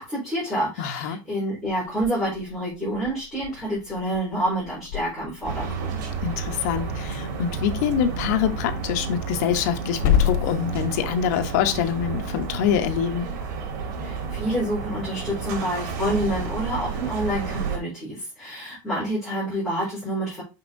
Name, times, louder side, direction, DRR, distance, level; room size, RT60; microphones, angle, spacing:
voice 1, 0.1-6.0 14.0-20.4, right 1 dB, ahead, 4.0 m, -28 dB
voice 2, 0.8-1.2 6.2-13.3, left 9 dB, 65° left, 1.1 m, -25 dB
Growling / Hiss, 1.6-12.4, left 10 dB, 80° left, 1.6 m, -32 dB
sound 1, 5.4-17.8, right 5 dB, 85° right, 2.5 m, -31 dB
6.1 x 5.8 x 2.7 m
cardioid pair, 180°, 10 cm